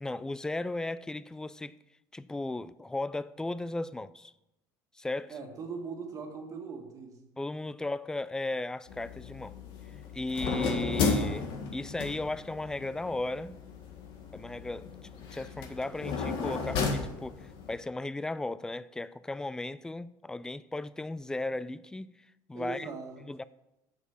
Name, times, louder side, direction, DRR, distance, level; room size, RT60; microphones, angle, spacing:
voice 1, 0.0-1.8 2.1-4.3 5.0-5.4 7.4-9.5 10.1-13.6 14.3-22.1 22.5-22.9 23.3-23.4, left 2 dB, 5° left, 0.3 m, -36 dB
voice 2, 5.3-7.2 22.5-23.2, right 5 dB, 40° right, 1.8 m, -40 dB
sound 1, 8.9-17.8, left 4 dB, 60° left, 1.7 m, -34 dB
8.3 x 7.2 x 5.7 m
cardioid pair, 120°, 9 cm